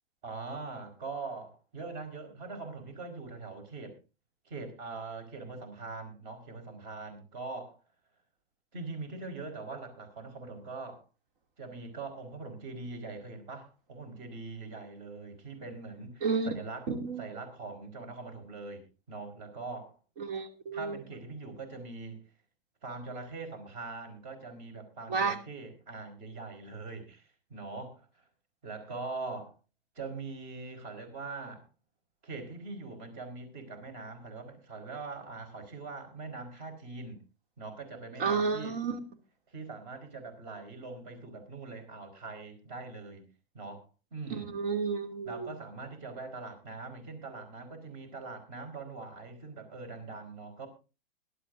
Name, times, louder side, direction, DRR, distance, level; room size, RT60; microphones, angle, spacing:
voice 1, 0.2-4.0 4.4-7.8 8.7-11.0 11.6-16.9 17.2-20.0 20.7-22.2 22.8-28.1 28.6-29.5 29.9-31.7 32.2-37.2 37.6-38.8 39.5-43.3 43.5-44.5 45.2-50.7, right 3 dB, 45° right, 8 dB, 4.9 m, -42 dB
voice 2, 16.9-17.2 20.2-21.0 25.1-25.4 38.2-39.0 44.3-45.5, right 5 dB, 65° right, 6 dB, 2.7 m, -31 dB
21.5 x 12.0 x 2.7 m, 0.31 s
supercardioid pair, 160°, 29 cm